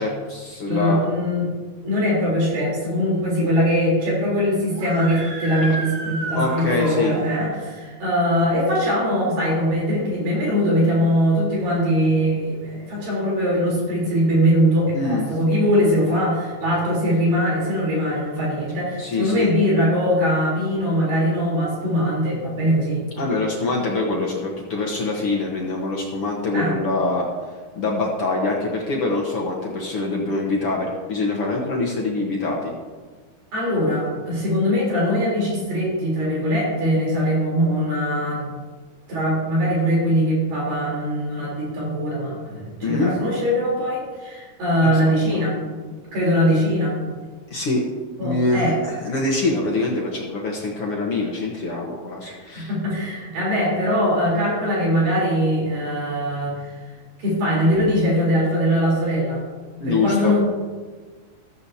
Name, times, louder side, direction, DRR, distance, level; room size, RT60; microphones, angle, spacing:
voice 1, 0.0-1.0 6.3-7.1 14.9-15.2 19.0-19.5 23.2-27.2 27.8-32.7 42.8-43.1 44.8-45.4 47.5-47.8 48.2-52.7 59.8-60.4, left 2 dB, 65° left, -2 dB, 1.4 m, -24 dB
voice 2, 0.7-1.5 1.8-23.0 26.5-26.7 33.5-38.5 39.1-45.6 45.8-47.0 48.2-48.8 52.2-56.7 57.2-59.4 59.9-60.4, equal, 60° right, -5 dB, 5.4 m, -21 dB
Screaming, 4.7-7.5, right 2 dB, 85° right, 3.8 m, -32 dB
14.5 x 14.0 x 2.8 m, 1.4 s
omnidirectional pair, 4.5 m